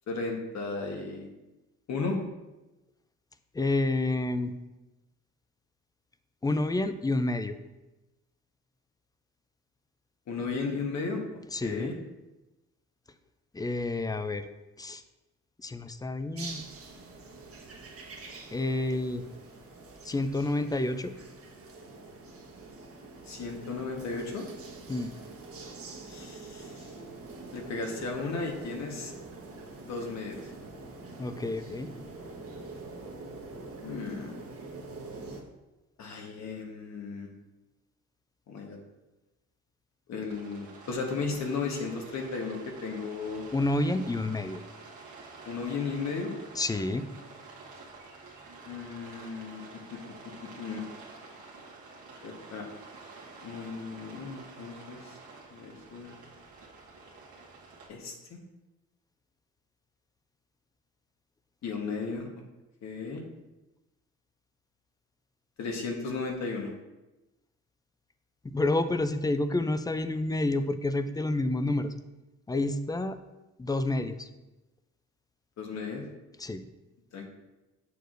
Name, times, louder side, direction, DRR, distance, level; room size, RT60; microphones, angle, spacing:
voice 1, 0.1-1.3 1.9-2.2 10.3-11.9 23.3-24.5 26.1-26.9 27.5-29.1 29.8-30.4 33.8-34.3 36.0-37.3 38.5-38.8 40.1-43.4 45.5-46.3 48.7-49.6 49.9-50.0 50.4-50.8 52.2-52.6 53.4-55.2 55.5-56.1 57.9-58.4 61.6-62.3 62.8-63.2 65.6-66.7 75.6-76.0 77.1-77.3, left 4 dB, 65° left, 1 dB, 1.3 m, -35 dB
voice 2, 3.5-4.5 6.4-7.6 11.5-11.9 13.5-14.5 14.8-15.0 15.6-16.6 18.5-19.3 20.0-21.1 24.9-25.1 31.2-31.9 43.5-44.6 46.5-47.1 68.4-71.9 72.5-73.2 73.6-74.3 76.4-76.6, left 2 dB, 15° left, 10 dB, 0.4 m, -29 dB
sound 1, 16.4-35.4, right 3 dB, 50° right, 1.2 m, -45 dB
Rain, 40.3-57.9, right 3 dB, 75° right, 1.4 m, -49 dB
6.8 x 6.3 x 2.6 m, 1.0 s
cardioid pair, 90°, 30 cm